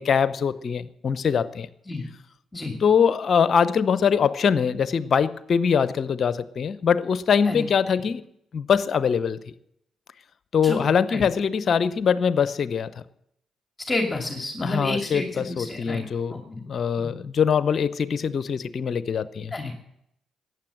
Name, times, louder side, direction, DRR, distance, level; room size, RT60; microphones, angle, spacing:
voice 1, 0.0-1.7 2.8-8.2 8.5-9.4 10.5-12.9 14.6-19.5, left 7 dB, 50° left, 0.7 m, -23 dB
voice 2, 10.6-11.2 13.9-16.6 17.0-17.1 19.5-19.8, left 2 dB, 20° left, 2.4 m, -30 dB
14.5 x 9.5 x 7.6 m
hypercardioid pair, 40°, 0 cm